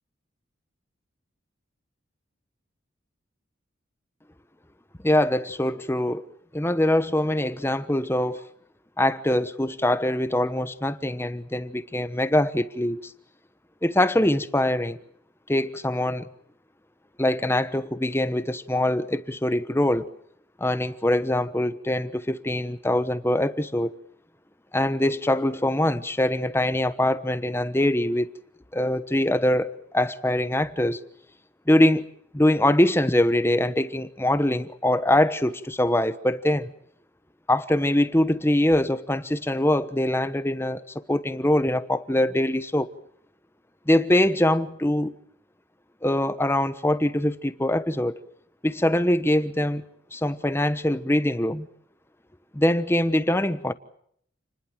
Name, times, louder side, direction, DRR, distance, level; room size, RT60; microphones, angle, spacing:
voice 1, 5.0-6.2 6.5-8.4 9.0-13.1 13.8-15.0 15.5-16.3 17.2-20.1 20.6-24.0 24.7-28.3 28.7-31.0 31.7-36.7 37.5-42.9 43.9-45.1 46.0-48.2 48.6-49.8 50.1-51.7 52.5-53.7, left 1 dB, 10° left, 1.1 m, -23 dB
29.5 x 20.5 x 7.6 m
head